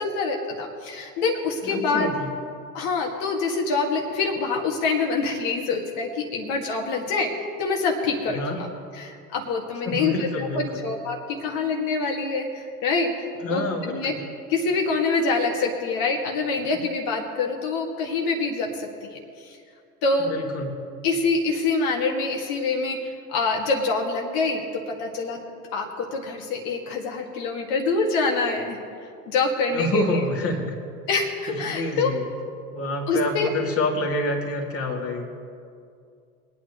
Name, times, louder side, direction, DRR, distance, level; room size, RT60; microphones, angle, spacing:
voice 1, 0.0-2.1 2.7-7.3 7.6-8.7 8.9-13.1 13.5-14.1 14.5-19.1 19.4-19.6 20.0-20.3 21.0-25.4 25.7-28.8 29.3-30.2 31.1-32.1 33.1-33.5, left 4 dB, 50° left, 1 dB, 1.9 m, -25 dB
voice 2, 1.6-2.3 8.3-8.6 9.8-10.8 13.4-14.2 16.7-16.8 20.2-20.7 29.7-30.8 31.5-32.2 32.7-35.3, left 1 dB, 30° left, 0 dB, 2.4 m, -28 dB
22.5 x 9.1 x 3.1 m, 2.4 s
hypercardioid pair, 90°, 47 cm